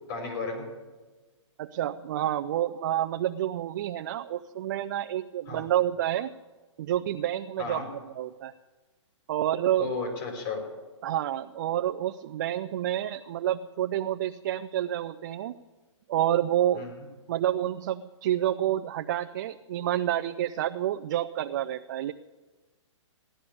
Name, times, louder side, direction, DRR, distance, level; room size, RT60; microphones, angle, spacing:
voice 1, 0.1-0.6 5.5-5.6 7.6-7.8 9.8-10.6 16.7-17.0, left 4 dB, 40° left, 2 dB, 5.1 m, -33 dB
voice 2, 1.6-6.3 6.8-7.8 8.1-8.5 9.3-9.9 11.0-15.5 16.1-16.9 17.3-22.1, right 12 dB, 35° right, 6 dB, 0.4 m, -28 dB
16.5 x 11.0 x 6.9 m, 1.3 s
hypercardioid pair, 160°, 16 cm